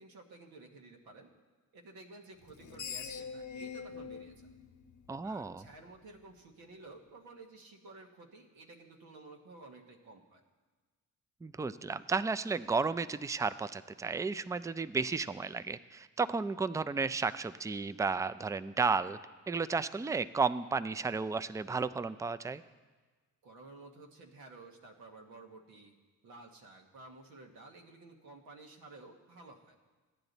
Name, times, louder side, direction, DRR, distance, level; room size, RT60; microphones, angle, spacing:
voice 1, 0.0-1.3 1.7-4.5 5.2-10.4 23.4-25.9 26.2-29.7, right 2 dB, 85° right, 1 dB, 1.3 m, -53 dB
Screech, 2.4-5.7, left 6 dB, 60° left, 0.8 m, -44 dB
voice 2, 5.1-5.6 11.4-19.2 19.5-22.6, right 4 dB, 10° right, 13 dB, 0.3 m, -33 dB
14.0 x 9.8 x 4.0 m, 1.3 s
supercardioid pair, 55°, 35 cm